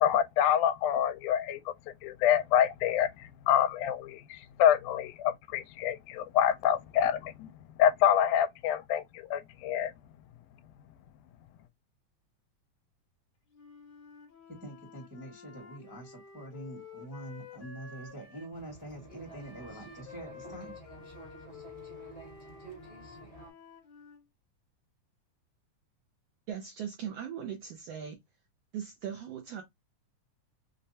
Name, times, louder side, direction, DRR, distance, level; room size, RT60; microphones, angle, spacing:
voice 1, 0.0-1.7 2.0-7.5 7.8-9.9, left 10 dB, 85° left, 2.0 m, -27 dB
Wind instrument woodwind instrument, 13.5-18.5 19.2-24.2, left 6 dB, 60° left, 1.1 m, -51 dB
voice 2, 14.5-20.7, right 1 dB, 15° right, 0.6 m, -45 dB
sound 1, 18.5-23.5, right 2 dB, 30° left, 0.6 m, -50 dB
voice 3, 26.5-28.2 28.7-29.6, right 8 dB, 80° right, 1.4 m, -39 dB
5.1 x 2.1 x 2.7 m
omnidirectional pair, 3.5 m